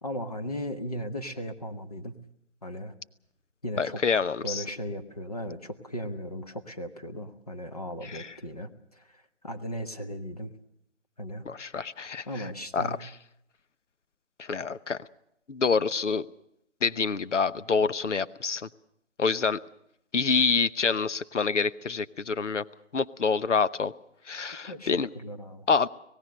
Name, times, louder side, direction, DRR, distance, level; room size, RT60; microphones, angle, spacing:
voice 1, 0.0-2.1 2.6-2.9 3.6-4.0 4.4-10.5 11.2-11.4 12.2-13.0 24.6-25.7, equal, 30° left, 6 dB, 1.3 m, -37 dB
voice 2, 3.8-4.6 8.0-8.3 11.5-12.5 12.7-13.1 14.4-15.0 15.5-16.3 16.8-18.7 19.2-19.6 20.1-22.6 22.9-23.9 24.3-25.1 25.7-25.9, left 5 dB, 75° left, 15 dB, 0.9 m, -27 dB
26.0 x 18.5 x 6.4 m, 0.78 s
figure-of-eight pair, 175°, 37 cm